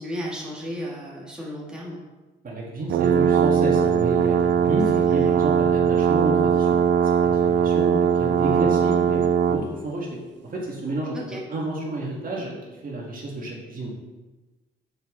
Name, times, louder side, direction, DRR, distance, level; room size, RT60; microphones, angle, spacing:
voice 1, 0.0-2.0 5.2-5.3 8.4-8.8 11.1-11.4, equal, 5° right, -5 dB, 1.4 m, -33 dB
voice 2, 2.4-12.6 12.8-13.9, right 2 dB, 45° right, -3 dB, 1.8 m, -30 dB
sound 1, 2.9-9.7, right 7 dB, 65° right, 0.5 m, -20 dB
6.4 x 4.8 x 3.7 m, 1.2 s
cardioid pair, 90°, 20 cm